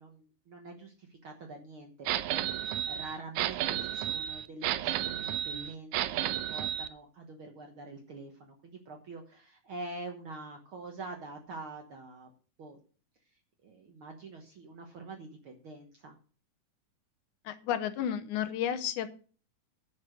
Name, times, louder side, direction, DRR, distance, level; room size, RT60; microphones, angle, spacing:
voice 1, 0.0-12.3 12.6-12.8 13.6-16.2, right 2 dB, 55° right, 3 dB, 1.5 m, -45 dB
sound 1, 2.1-6.9, right 12 dB, 80° right, 1.8 m, -32 dB
voice 2, 17.5-19.1, left 10 dB, 75° left, 10 dB, 2.2 m, -32 dB
10.5 x 6.7 x 6.3 m, 0.40 s
omnidirectional pair, 3.8 m